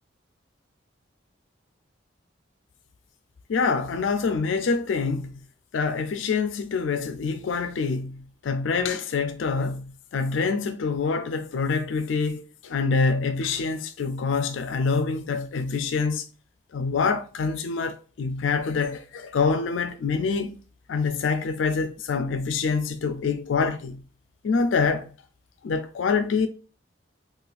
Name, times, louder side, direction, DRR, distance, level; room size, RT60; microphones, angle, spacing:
voice 1, 3.5-5.4 5.7-16.3 16.7-20.6 20.9-24.0 24.4-25.1 25.6-26.5, left 4 dB, 75° left, 0.4 m, -26 dB
3.9 x 2.4 x 2.4 m
head